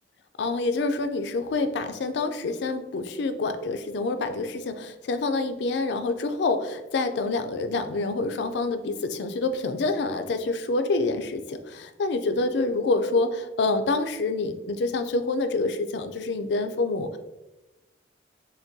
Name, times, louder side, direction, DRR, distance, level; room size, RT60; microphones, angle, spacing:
voice 1, 0.4-17.2, left 3 dB, 65° left, 8 dB, 0.3 m, -27 dB
5.8 x 2.2 x 2.6 m, 1.0 s
head